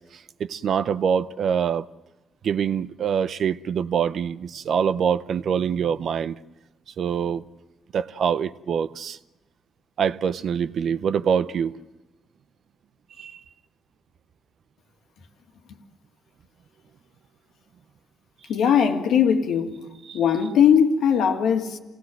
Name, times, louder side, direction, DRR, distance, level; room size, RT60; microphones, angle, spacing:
voice 1, 0.0-1.9 2.4-6.4 7.0-7.4 7.9-9.2 10.0-11.8 13.2-13.4 20.1-20.2, right 7 dB, 60° right, 0.7 m, -25 dB
voice 2, 18.5-21.8, left 7 dB, 80° left, 2.0 m, -20 dB
27.5 x 18.0 x 7.8 m
cardioid pair, 90°, 0 cm